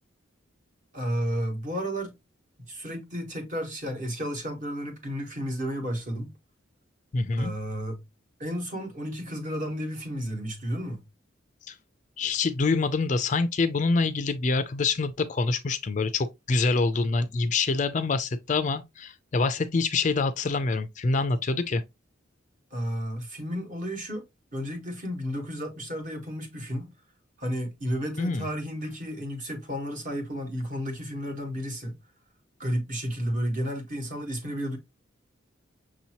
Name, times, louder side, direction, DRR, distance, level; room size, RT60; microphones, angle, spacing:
voice 1, 0.9-2.1 2.7-6.3 7.4-8.0 8.4-11.0 22.7-24.2 24.5-26.9 27.4-32.0 32.6-34.8, equal, 40° right, 1.2 m, -32 dB
voice 2, 7.1-7.5 11.7-11.8 12.2-21.8 28.2-28.5, left 3 dB, 40° left, 0.4 m, -26 dB
6.1 x 2.8 x 2.9 m
head